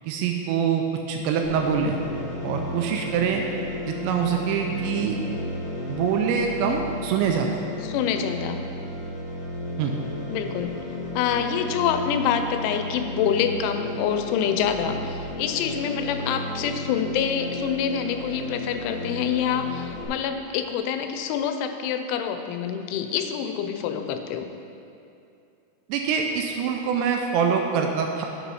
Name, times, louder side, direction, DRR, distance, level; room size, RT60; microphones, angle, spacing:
voice 1, 0.1-2.0 2.4-3.4 3.9-5.2 5.9-7.6 9.8-9.9 25.9-28.3, right 7 dB, 85° right, 3 dB, 2.6 m, -24 dB
sound 1, 1.4-20.1, left 1 dB, 55° left, 2.9 m, -34 dB
voice 2, 7.8-8.6 10.3-10.8 11.2-24.5, left 8 dB, 90° left, 7 dB, 3.0 m, -26 dB
7.0 x 5.9 x 5.5 m, 2.6 s
omnidirectional pair, 5.3 m